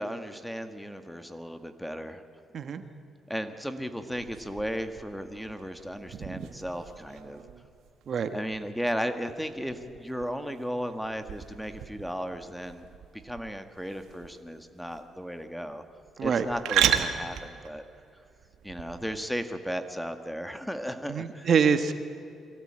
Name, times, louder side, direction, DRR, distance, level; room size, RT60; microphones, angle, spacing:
voice 1, 0.0-2.2 3.3-7.4 8.3-12.8 13.2-15.8 16.2-17.8 18.6-21.5, equal, ahead, 8 dB, 1.7 m, -35 dB
sound 1, 4.1-19.2, right 10 dB, 85° right, 1.5 m, -36 dB
voice 2, 21.1-21.9, right 6 dB, 55° right, 9 dB, 1.3 m, -25 dB
23.5 x 17.0 x 8.9 m, 2.5 s
cardioid pair, 90°, 0 cm